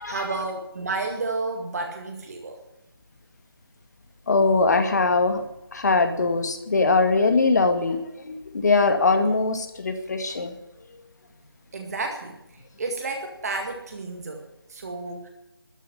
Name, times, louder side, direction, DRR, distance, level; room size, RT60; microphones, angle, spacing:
voice 1, 0.1-2.6 11.7-12.4 12.8-15.3, right 3 dB, 40° right, 3 dB, 2.0 m, -31 dB
voice 2, 4.3-5.4 5.7-8.0 8.3-10.5, left 3 dB, 45° left, 6 dB, 2.1 m, -21 dB
13.0 x 9.5 x 10.0 m, 0.87 s
figure-of-eight pair, 165°, 12 cm